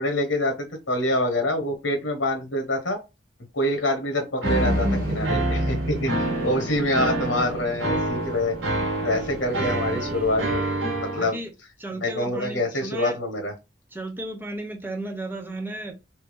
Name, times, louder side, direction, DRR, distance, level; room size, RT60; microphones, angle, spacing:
voice 1, 0.0-3.0 3.5-8.6 9.0-10.6 11.0-11.4 11.9-13.5, left 1 dB, 80° left, 1.0 m, -26 dB
sound 1, 4.4-10.5, right 1 dB, 50° right, 1.3 m, -32 dB
sound 2, 4.4-11.3, right 1 dB, 75° right, 1.5 m, -27 dB
voice 2, 11.1-11.5 11.8-13.2 13.9-15.9, right 1 dB, 10° right, 0.7 m, -34 dB
3.4 x 2.8 x 3.3 m
head